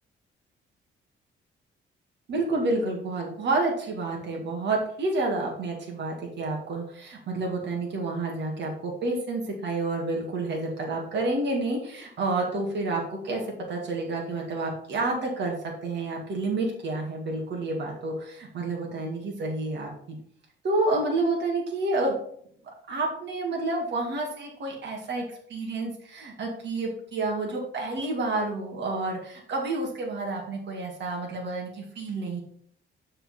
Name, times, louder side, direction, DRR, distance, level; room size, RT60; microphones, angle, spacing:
voice 1, 2.3-13.4 13.7-15.6 15.8-20.2 20.6-22.1 22.9-32.4, right 2 dB, 60° right, -1 dB, 2.0 m, -29 dB
7.1 x 4.4 x 5.5 m, 0.64 s
cardioid pair, 90°, 20 cm